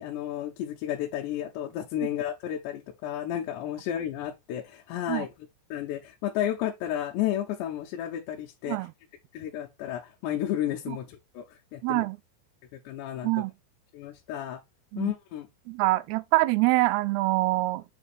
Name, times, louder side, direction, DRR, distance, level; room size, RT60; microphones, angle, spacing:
voice 1, 0.0-5.3 5.7-8.8 9.3-11.4 11.7-12.0 12.9-13.3 13.9-14.6 15.0-15.5, left 11 dB, 90° left, 2.9 m, -32 dB
voice 2, 11.8-12.2 13.2-13.5 14.9-15.1 15.7-17.8, right 20 dB, 85° right, 2.5 m, -25 dB
7.4 x 2.6 x 5.0 m
omnidirectional pair, 4.7 m